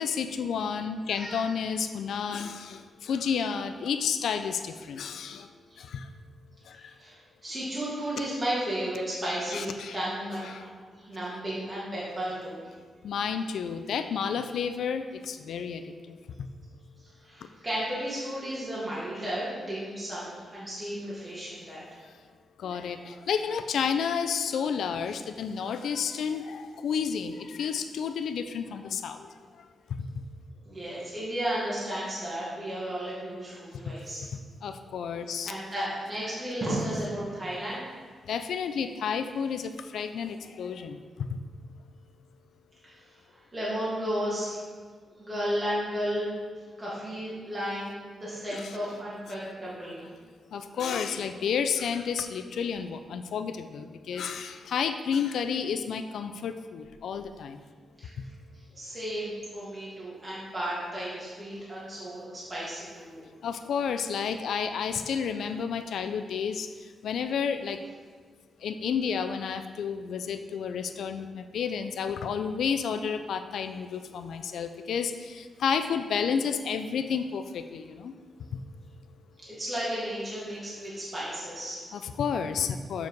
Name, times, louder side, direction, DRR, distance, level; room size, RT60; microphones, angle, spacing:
voice 1, 0.0-5.5 5.8-6.1 6.7-6.9 9.5-10.0 10.5-10.6 13.0-16.2 22.6-29.3 33.9-34.0 34.6-35.5 38.3-41.3 48.5-48.8 50.5-57.6 63.4-66.7 67.0-67.8 68.6-78.1 81.9-83.1, left 6 dB, 75° left, 9 dB, 0.4 m, -31 dB
voice 2, 1.1-1.5 6.7-12.6 17.2-21.8 30.7-34.2 35.4-37.8 42.8-43.0 43.3-44.5 45.2-46.3 46.8-50.0 58.0-58.1 58.8-63.3 79.5-81.8, equal, 20° right, -9 dB, 1.8 m, -33 dB
7.3 x 4.7 x 4.6 m, 1.5 s
wide cardioid pair, 165°, 0 cm